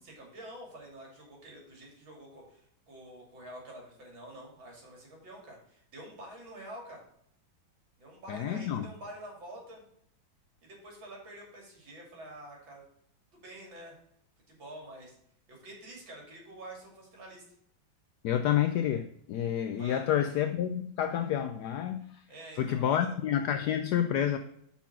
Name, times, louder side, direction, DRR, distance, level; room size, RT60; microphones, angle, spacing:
voice 1, 0.0-7.0 8.0-9.8 10.6-12.8 13.3-13.9 14.5-15.2 15.5-17.4 19.7-20.2 22.3-23.1, right 1 dB, 70° right, -1 dB, 3.3 m, -47 dB
voice 2, 8.3-8.9 18.2-22.2 22.6-24.4, left 10 dB, 75° left, 8 dB, 1.0 m, -29 dB
6.0 x 5.8 x 5.9 m, 0.70 s
omnidirectional pair, 2.2 m